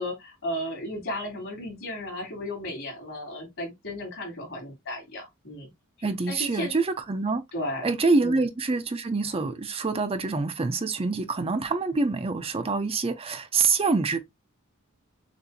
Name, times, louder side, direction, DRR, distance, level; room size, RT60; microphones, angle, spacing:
voice 1, 0.0-5.7 6.3-6.7 7.5-7.9 8.2-8.4, left 1 dB, 65° left, 3.3 m, -34 dB
voice 2, 6.0-7.4 7.8-14.2, right 4 dB, 30° right, 0.6 m, -26 dB
6.8 x 2.6 x 2.8 m
head